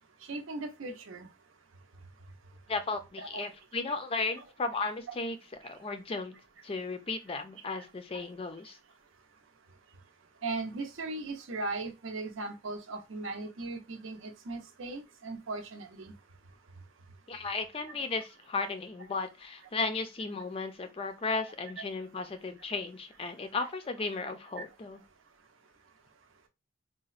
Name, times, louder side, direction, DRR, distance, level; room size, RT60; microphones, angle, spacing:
voice 1, 0.3-1.3 3.2-3.5 3.9-4.0 5.1-5.2 8.1-8.2 10.4-16.1 24.6-24.7, right 3 dB, 80° right, 0.6 m, -38 dB
voice 2, 2.7-5.4 5.6-6.4 6.6-8.8 17.3-25.0, left 3 dB, 30° left, 0.4 m, -35 dB
4.0 x 2.1 x 2.4 m
head